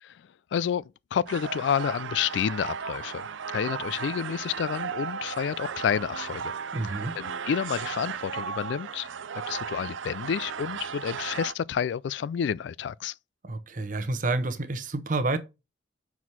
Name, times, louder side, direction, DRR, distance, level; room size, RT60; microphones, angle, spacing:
voice 1, 0.5-6.5 7.2-9.1 9.5-13.1, left 8 dB, 70° left, 0.3 m, -29 dB
sound 1, 1.3-11.5, right 6 dB, 85° right, 0.5 m, -35 dB
voice 2, 6.7-7.1 13.4-15.4, right 2 dB, 45° right, 0.9 m, -29 dB
6.0 x 4.7 x 5.5 m
head